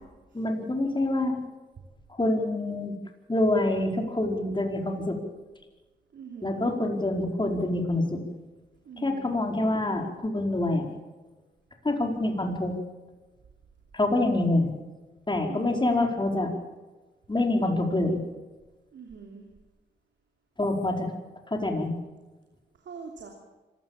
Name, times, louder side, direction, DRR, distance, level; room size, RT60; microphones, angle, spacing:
voice 1, 0.3-1.4 2.2-3.0 3.3-5.2 6.4-8.2 9.0-10.9 11.8-12.8 13.9-14.7 15.3-16.5 17.3-18.2 20.6-21.1 21.5-21.9, left 2 dB, 25° left, 2 dB, 4.9 m, -26 dB
voice 2, 6.1-6.6 8.8-9.4 15.5-15.9 18.9-19.5 22.8-23.3, right 6 dB, 85° right, 1 dB, 3.0 m, -43 dB
25.5 x 16.0 x 7.5 m, 1.2 s
cardioid pair, 65°, 19 cm